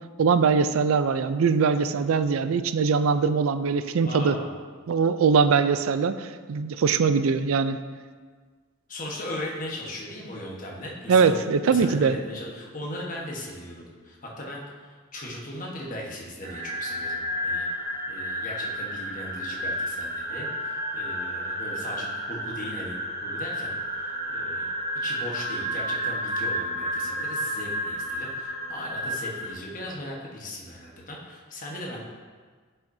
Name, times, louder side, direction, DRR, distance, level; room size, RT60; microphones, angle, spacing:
voice 1, 0.2-4.4 4.9-7.8 11.1-12.1, right 5 dB, 75° right, 11 dB, 0.4 m, -22 dB
voice 2, 4.0-4.5 8.9-11.4 11.6-17.7 18.1-23.0 23.2-24.7 24.9-32.0, left 1 dB, 40° left, -2 dB, 1.2 m, -38 dB
sound 1, 16.4-29.5, equal, 45° right, 1.8 m, -31 dB
10.0 x 5.7 x 2.7 m, 1.5 s
head